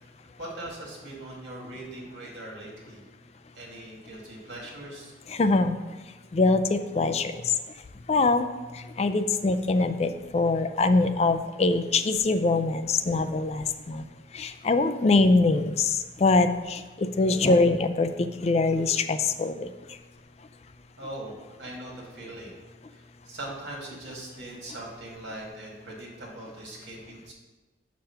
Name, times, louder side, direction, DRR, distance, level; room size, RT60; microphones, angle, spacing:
voice 1, 0.4-3.0 3.5-5.1 21.0-22.6 22.9-27.3, right 1 dB, 75° right, -2 dB, 2.0 m, -41 dB
voice 2, 5.4-5.7 6.3-7.3 8.1-8.5 9.0-13.6 13.9-14.0 14.4-15.9 16.2-16.8 17.2-18.1 18.4-19.7, left 3 dB, 35° left, 9 dB, 0.3 m, -23 dB
5.6 x 5.2 x 5.7 m, 1.2 s
head